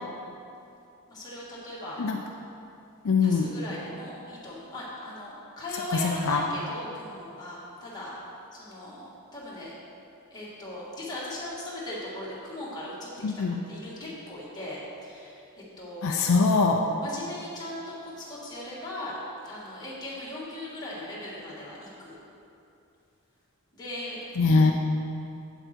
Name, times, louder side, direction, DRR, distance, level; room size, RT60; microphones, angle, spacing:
voice 1, 1.1-2.0 3.2-8.1 8.5-9.7 10.3-13.1 13.4-15.4 15.8-16.3 17.0-19.2 19.4-22.1 23.7-24.2, left 1 dB, 20° left, -8 dB, 2.3 m, -38 dB
voice 2, 3.0-3.5 6.0-6.4 13.2-13.6 16.0-16.8 24.4-24.7, left 4 dB, 65° left, 2 dB, 0.5 m, -22 dB
8.0 x 7.8 x 4.5 m, 2.6 s
head